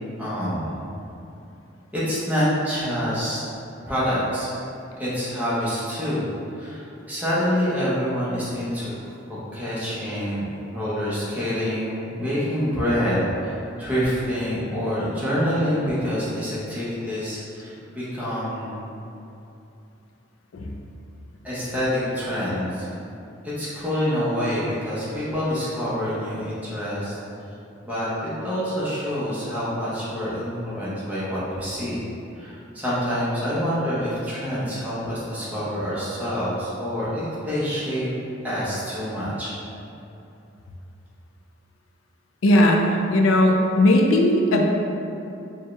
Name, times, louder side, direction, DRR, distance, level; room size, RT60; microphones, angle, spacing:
voice 1, 0.2-0.9 1.9-3.4 3.9-4.5 5.0-6.2 6.6-8.9 9.3-18.9 21.4-22.9 23.4-27.2 27.8-32.1 32.3-38.1 38.4-39.5, equal, 10° right, -10 dB, 0.8 m, -26 dB
voice 2, 42.4-44.7, left 1 dB, 85° left, 1 dB, 0.4 m, -18 dB
4.5 x 2.3 x 3.1 m, 2.8 s
head